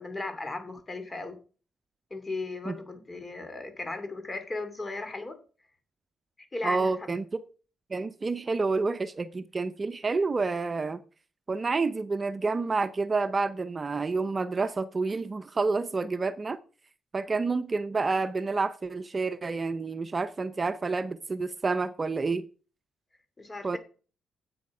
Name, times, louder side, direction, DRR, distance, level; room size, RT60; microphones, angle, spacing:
voice 1, 0.0-1.4 2.1-5.4 6.5-7.2 23.4-23.8, left 2 dB, 25° left, 2.7 m, -36 dB
voice 2, 6.6-7.2 7.9-11.0 11.5-16.6 17.1-22.5 23.6-23.8, right 3 dB, 35° right, 0.7 m, -29 dB
8.5 x 7.7 x 4.9 m
supercardioid pair, 60°, 0 cm